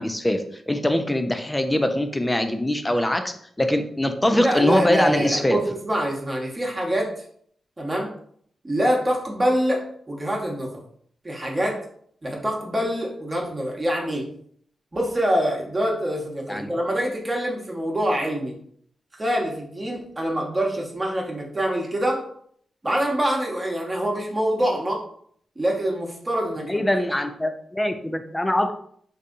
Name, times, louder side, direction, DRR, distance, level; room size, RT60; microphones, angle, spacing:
voice 1, 0.0-5.6 16.5-16.7 26.6-28.7, left 1 dB, 15° left, 7 dB, 0.5 m, -23 dB
voice 2, 4.3-7.1 7.8-8.1 8.6-10.8 11.2-11.8 12.2-14.2 14.9-18.5 19.2-22.2 22.8-25.0 25.6-26.8, equal, 30° right, -1 dB, 1.1 m, -25 dB
3.3 x 2.7 x 2.6 m, 0.63 s
supercardioid pair, 45°, 0 cm